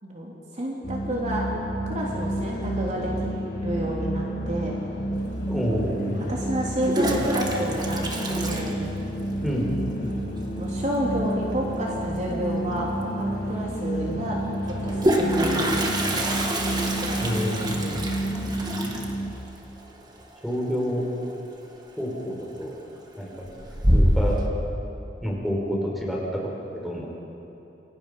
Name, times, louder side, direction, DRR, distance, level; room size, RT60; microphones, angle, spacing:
voice 1, 0.0-1.5 1.9-3.3 3.6-4.8 6.1-8.8 10.6-14.4 14.6-15.8 17.0-18.0, equal, 40° right, -3 dB, 3.0 m, -30 dB
sound 1, 0.8-19.3, right 1 dB, 70° left, 4.6 m, -30 dB
Toilet flush, 5.3-5.4 6.6-9.4 9.7-9.8 10.1-10.2 10.4-10.8 12.6-12.7 13.0-13.1 14.6-21.3 21.6-22.1 22.5-23.0 23.4-24.4, equal, 25° right, 2.1 m, -26 dB
voice 2, 5.5-6.0 9.4-9.7 17.2-18.0 20.4-21.0 22.0-22.7 23.2-23.6 23.9-24.3 25.2-26.2 26.8-27.2, equal, ahead, -4 dB, 5.4 m, -28 dB
28.5 x 23.5 x 5.4 m, 3.0 s
head